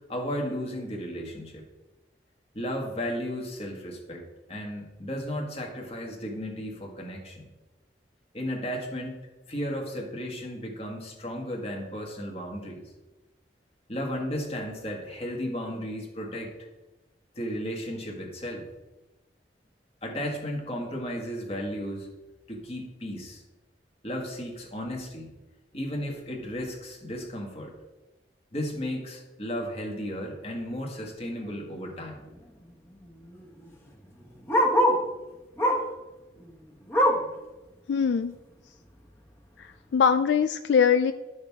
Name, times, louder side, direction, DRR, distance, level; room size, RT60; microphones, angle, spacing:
voice 1, 0.1-1.6 2.5-7.5 8.3-9.2 9.5-12.8 13.9-16.5 17.4-18.7 20.0-22.1 22.5-23.4 24.0-25.3 25.7-27.7 28.5-32.2, equal, 35° left, 1 dB, 1.7 m, -34 dB
Bark, 31.4-31.6 32.0-32.1 32.2-35.1 35.6-36.0 36.4-37.4 37.8-37.9 38.3-38.4 39.1-39.2, equal, 15° left, 1.2 m, -25 dB
voice 2, 37.9-38.4 39.6-39.7 39.9-41.1, left 6 dB, 80° left, 9 dB, 0.4 m, -22 dB
11.5 x 6.5 x 3.6 m, 1.1 s
head